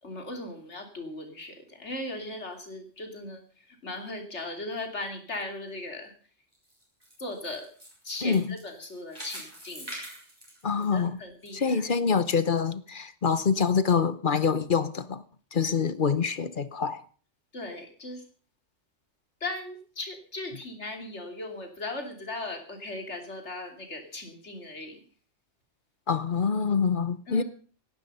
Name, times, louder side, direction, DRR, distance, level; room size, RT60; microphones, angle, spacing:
voice 1, 0.0-6.1 7.2-7.7 8.0-10.0 10.8-11.9 17.5-18.2 19.4-25.0 27.3-27.4, left 2 dB, 60° left, 3.4 m, -38 dB
sound 1, 6.5-11.5 11.9-12.0 12.6-12.7, equal, 20° right, 6.8 m, -44 dB
voice 2, 8.2-8.5 10.6-11.2 11.5-15.2 15.5-17.0 26.1-27.4, left 6 dB, 45° left, 0.9 m, -25 dB
18.0 x 11.5 x 5.5 m
omnidirectional pair, 1.3 m